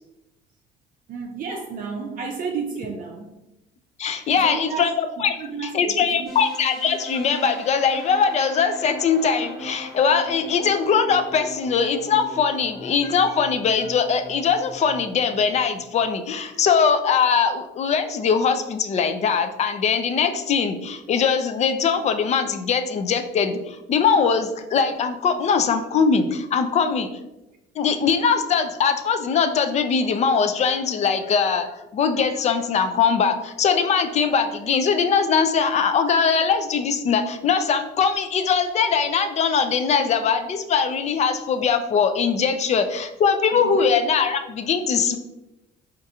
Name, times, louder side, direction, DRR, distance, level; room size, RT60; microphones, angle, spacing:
voice 1, 1.1-3.3 4.3-4.9 5.2-6.3 43.5-43.8, right 5 dB, 55° right, 1 dB, 0.5 m, -32 dB
voice 2, 4.0-5.4 5.6-27.1 27.8-31.7 31.9-45.2, left 6 dB, 40° left, 9 dB, 0.4 m, -21 dB
sound 1, 6.2-16.1, equal, 5° left, 1.0 m, -40 dB
4.6 x 2.5 x 2.7 m, 0.95 s
cardioid pair, 110°, 17 cm